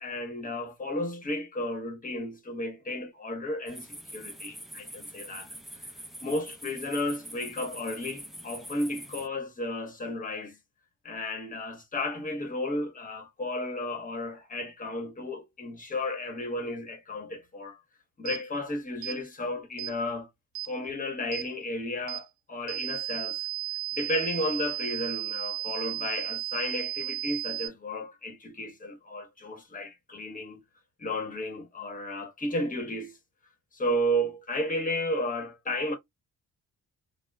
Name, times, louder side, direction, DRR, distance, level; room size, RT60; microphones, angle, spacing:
voice 1, 0.0-5.5 6.2-10.6 11.0-17.8 18.2-20.3 20.7-23.4 24.0-30.6 31.0-33.2 33.7-36.0, left 1 dB, 25° left, 1.1 m, -33 dB
sound 1, 3.7-9.3, right 1 dB, ahead, 0.6 m, -44 dB
sound 2, 18.3-18.4 19.0-19.2 19.8-20.0 20.6-20.7 21.3-21.5 22.1-22.2 22.7-27.7, right 15 dB, 75° right, 0.5 m, -34 dB
2.9 x 2.1 x 2.3 m
cardioid pair, 90°, 30 cm